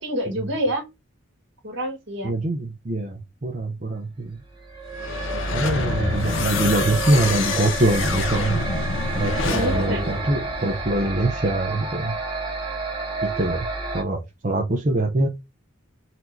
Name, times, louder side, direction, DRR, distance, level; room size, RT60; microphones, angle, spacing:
voice 1, 0.0-0.8 1.6-2.3 9.5-10.2, right 1 dB, 60° right, 1.7 m, -27 dB
voice 2, 2.2-4.4 5.5-8.6 9.1-12.1 13.2-13.7 13.9-15.3, right 2 dB, 40° right, 0.7 m, -24 dB
sound 1, 4.5-14.0, right 2 dB, 20° right, 1.2 m, -30 dB
sound 2, 4.9-11.2, left 3 dB, 70° left, 0.7 m, -28 dB
4.2 x 2.7 x 4.4 m
head